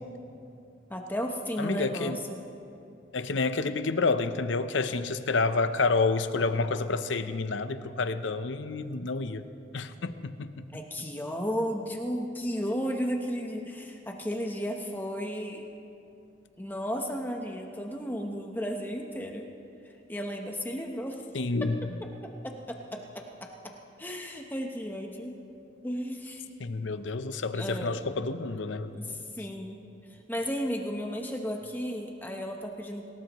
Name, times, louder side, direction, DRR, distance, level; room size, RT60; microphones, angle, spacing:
voice 1, 0.9-2.4 10.7-15.6 16.6-19.5 19.8-21.2 22.4-23.5 24.0-25.3 25.8-26.4 27.5-28.0 28.9-29.8 30.3-33.1, equal, 10° left, 2 dB, 0.9 m, -34 dB
voice 2, 1.6-2.2 3.1-9.5 9.7-10.7 21.3-21.8 26.6-29.1, left 3 dB, 85° left, 11 dB, 0.7 m, -29 dB
26.5 x 18.0 x 3.1 m, 2.7 s
head